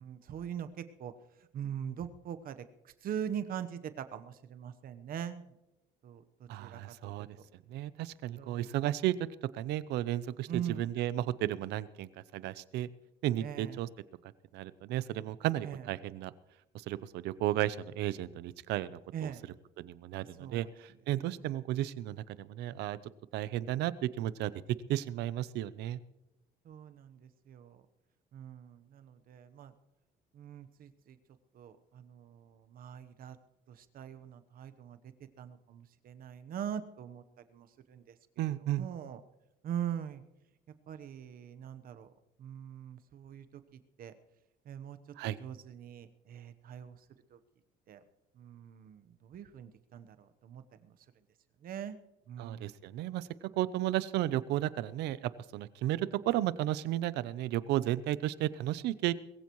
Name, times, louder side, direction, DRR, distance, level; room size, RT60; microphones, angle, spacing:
voice 1, 0.0-1.1 1.5-2.6 3.0-5.4 6.0-7.1 8.4-8.7 10.5-10.9 13.4-13.8 15.6-15.8 19.1-19.4 20.4-20.7 26.7-27.8 28.3-29.7 30.3-31.2 31.5-33.4 33.7-35.0 35.4-37.2 37.5-38.0 38.8-39.2 39.6-40.2 40.9-42.1 42.4-43.6 44.0-44.1 44.7-45.0 45.4-47.0 47.3-47.4 47.9-48.0 48.4-50.9 51.6-52.0 52.3-52.7, right 9 dB, 60° right, 11 dB, 1.1 m, -42 dB
voice 2, 6.5-7.3 7.7-9.1 9.4-12.9 13.2-13.9 14.5-16.3 16.7-23.0 23.3-26.0 38.4-38.9 45.2-45.4 52.4-59.1, right 14 dB, 85° right, 17 dB, 0.7 m, -34 dB
21.5 x 15.5 x 3.1 m, 0.92 s
cardioid pair, 110°, 17 cm